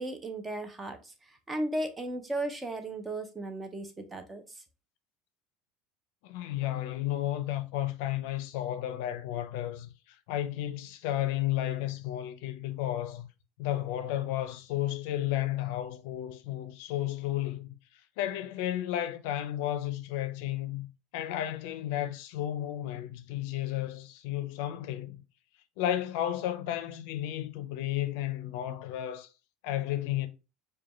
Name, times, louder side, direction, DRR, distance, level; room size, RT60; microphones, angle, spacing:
voice 1, 0.0-4.6, right 1 dB, 15° right, 0.7 m, -36 dB
voice 2, 6.2-13.3 13.6-17.7 18.2-20.9 21.1-25.2 25.8-29.3 29.6-30.3, left 13 dB, 70° left, 0.5 m, -33 dB
4.9 x 2.3 x 3.0 m
supercardioid pair, 135°, 0 cm